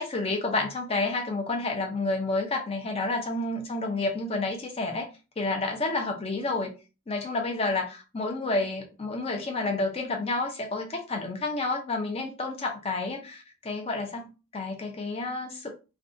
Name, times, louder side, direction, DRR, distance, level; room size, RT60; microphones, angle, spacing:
voice 1, 0.0-5.1 5.4-6.7 7.1-15.7, left 2 dB, 25° left, 0.4 m, -30 dB
2.6 x 2.2 x 2.5 m
head